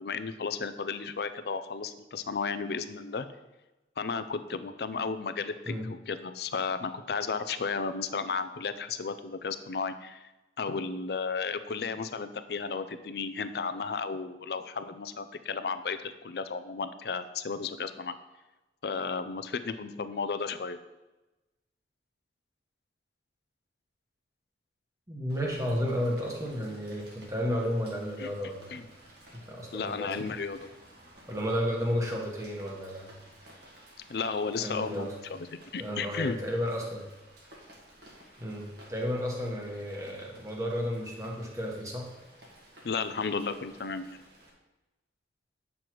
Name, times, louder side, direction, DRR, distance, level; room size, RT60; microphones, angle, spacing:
voice 1, 0.0-3.3 4.0-10.3 10.6-18.1 18.8-20.8 28.2-28.3 28.7-28.9 29.7-30.7 34.1-36.4 42.8-44.2, left 5 dB, 60° left, 11 dB, 0.4 m, -34 dB
voice 2, 25.1-28.8 29.5-30.3 31.3-33.1 34.6-35.1 35.8-37.0 38.4-42.1, equal, 15° right, -1 dB, 1.2 m, -32 dB
Rain, 25.3-44.5, right 1 dB, 65° right, 1.7 m, -55 dB
8.6 x 6.3 x 3.0 m, 1.1 s
head